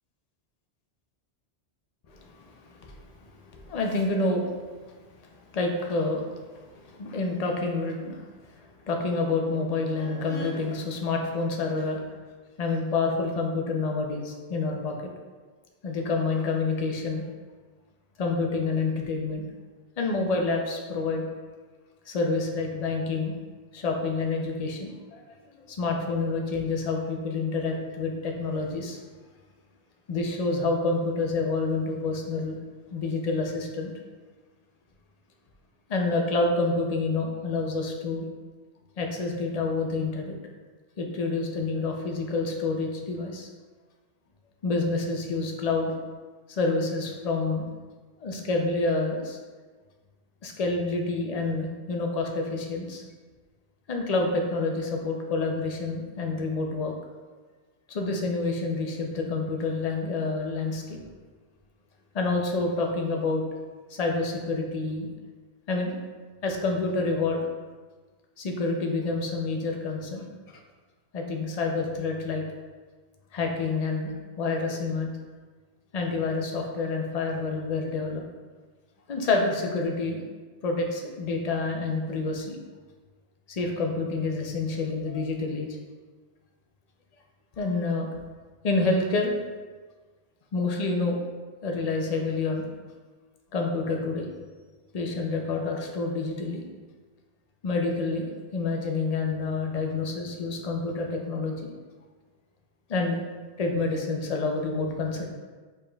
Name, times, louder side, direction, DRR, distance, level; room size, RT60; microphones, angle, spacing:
voice 1, 2.1-4.5 5.5-8.3 8.9-12.2 12.6-15.1 15.8-17.2 18.2-19.5 20.0-21.3 22.1-23.3 23.7-25.2 25.5-29.0 30.1-32.6 32.9-33.9 35.9-38.3 39.0-40.4 41.0-43.5 44.6-46.0 46.5-47.7 48.2-49.4 50.4-53.0 53.9-56.9 57.9-61.0 62.1-63.4 63.9-65.1 65.7-65.9 66.4-67.4 68.4-70.6 71.1-72.4 73.3-75.1 75.9-78.2 79.1-80.2 80.6-82.6 83.5-85.7 87.6-88.1 88.6-89.3 90.5-91.2 91.6-92.6 93.5-94.3 94.9-96.6 97.6-98.3 98.5-101.7 102.9-103.2 103.6-105.3, left 3 dB, 45° left, 1 dB, 0.5 m, -28 dB
5.1 x 4.4 x 2.3 m, 1.4 s
omnidirectional pair, 1.2 m